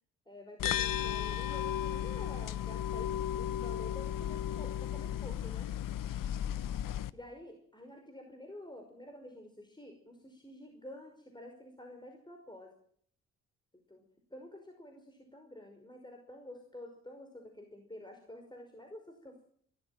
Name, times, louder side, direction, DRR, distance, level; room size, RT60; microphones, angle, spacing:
voice 1, 0.3-5.7 7.1-12.7 13.9-14.0 14.3-19.5, left 1 dB, 10° left, 3 dB, 5.3 m, -50 dB
sound 1, 0.6-7.1, left 10 dB, 60° left, 0.9 m, -34 dB
22.0 x 13.5 x 9.0 m, 0.63 s
hypercardioid pair, 45°, 36 cm